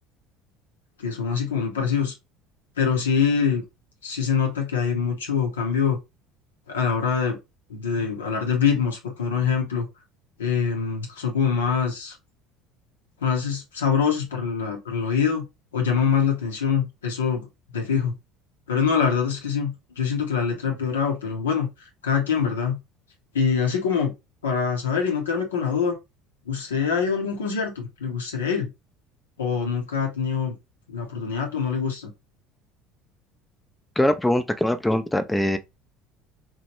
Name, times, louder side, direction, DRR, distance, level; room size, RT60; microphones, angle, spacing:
voice 1, 1.0-2.1 2.8-3.6 4.0-6.0 6.7-7.4 7.7-9.9 10.4-12.2 13.2-15.5 15.7-17.5 17.7-18.1 18.7-22.8 23.3-24.1 24.4-26.0 26.5-28.7 29.4-30.6 30.9-32.1, left 6 dB, 85° left, 0.6 m, -24 dB
voice 2, 34.0-35.6, left 1 dB, 10° left, 0.4 m, -22 dB
2.9 x 2.1 x 2.9 m
hypercardioid pair, 70°, 0 cm